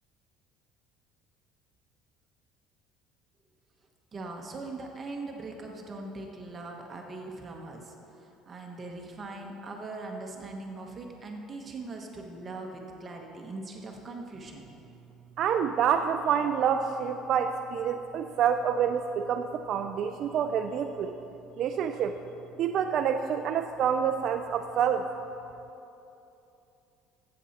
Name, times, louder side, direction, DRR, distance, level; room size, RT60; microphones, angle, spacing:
voice 1, 4.1-14.7, right 2 dB, 25° right, 1 dB, 1.0 m, -41 dB
voice 2, 15.4-21.1 21.6-22.2 22.6-25.1, right 8 dB, 50° right, 6 dB, 0.4 m, -27 dB
14.5 x 7.7 x 4.2 m, 2.9 s
cardioid pair, 145°, 0 cm